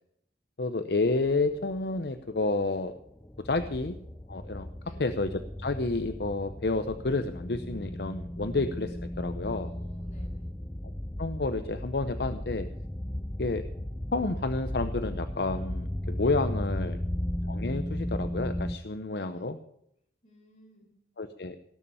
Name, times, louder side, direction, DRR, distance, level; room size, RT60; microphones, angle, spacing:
voice 1, 0.6-2.9 3.4-4.0 4.3-4.7 5.0-9.7 11.2-12.7 13.4-13.6 14.1-17.0 17.5-19.6 21.2-21.6, left 3 dB, 65° left, 10 dB, 0.7 m, -30 dB
sound 1, 1.0-18.8, left 1 dB, 10° left, 0.6 m, -36 dB
voice 2, 9.6-10.6 16.7-17.3 19.1-19.5 20.2-20.9, left 1 dB, 40° left, -1 dB, 5.8 m, -57 dB
18.0 x 6.9 x 8.7 m, 0.74 s
head